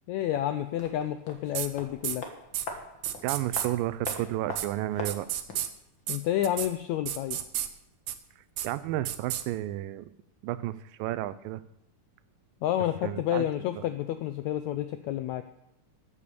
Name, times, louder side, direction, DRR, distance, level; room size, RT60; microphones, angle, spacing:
voice 1, 0.1-2.2 6.1-7.4 12.6-15.5, left 12 dB, 85° left, 9 dB, 1.6 m, -30 dB
sound 1, 0.7-5.7 6.0-6.1, left 3 dB, 45° left, 2.0 m, -42 dB
sound 2, 1.5-1.7 2.0-2.2 2.5-2.6 3.0-3.7 4.0-4.2 4.5-4.7 5.0-5.7 6.1-6.2 6.4-6.7 7.1-7.7 8.1-8.2 8.6-8.7 9.0-9.4, right 12 dB, 75° right, 2.2 m, -31 dB
voice 2, 3.2-5.3 8.4-10.1 10.4-11.6 13.0-13.5 13.7-13.8, right 14 dB, 90° right, 15 dB, 2.4 m, -32 dB
14.0 x 8.7 x 6.9 m, 0.83 s
omnidirectional pair, 3.9 m